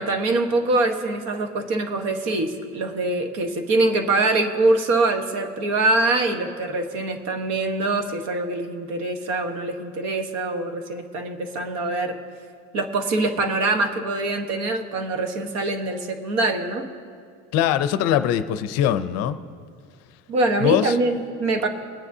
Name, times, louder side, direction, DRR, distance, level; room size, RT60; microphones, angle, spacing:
voice 1, 0.0-12.2 12.7-16.9 20.3-21.7, right 2 dB, 55° right, 5 dB, 1.2 m, -24 dB
voice 2, 17.5-19.4 20.6-21.0, left 10 dB, 55° left, 11 dB, 0.6 m, -21 dB
21.5 x 10.0 x 2.7 m, 2.2 s
cardioid pair, 175°, 31 cm